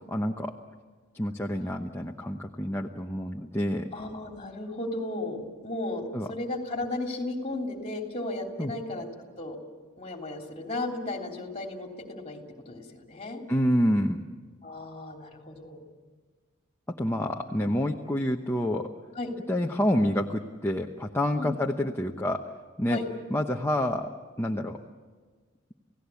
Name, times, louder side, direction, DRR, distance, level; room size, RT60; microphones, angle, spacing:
voice 1, 0.1-0.5 1.1-3.9 6.1-6.3 8.6-8.7 13.5-14.2 17.0-18.9 19.5-22.4 22.8-23.0 23.3-24.1 24.4-24.8, left 1 dB, 10° left, 1 dB, 0.9 m, -28 dB
voice 2, 3.9-9.1 9.4-9.6 10.0-13.4 14.6-15.9 19.1-19.3 21.4-21.5 22.9-23.0, left 2 dB, 30° left, 2 dB, 3.2 m, -35 dB
29.5 x 17.0 x 8.4 m, 1.5 s
head